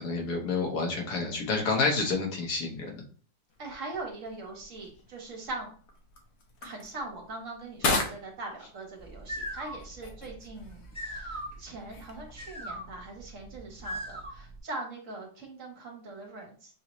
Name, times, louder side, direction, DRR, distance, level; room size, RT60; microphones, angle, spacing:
voice 1, 0.0-2.9, left 3 dB, 80° left, 1 dB, 1.7 m, -29 dB
sound 1, 3.5-12.7, left 3 dB, 60° left, 1.2 m, -38 dB
voice 2, 3.6-5.7 6.6-16.7, right 2 dB, 55° right, 1 dB, 1.5 m, -41 dB
sound 2, 9.0-14.6, equal, 5° left, 1.0 m, -40 dB
6.2 x 2.8 x 3.0 m, 0.43 s
omnidirectional pair, 1.7 m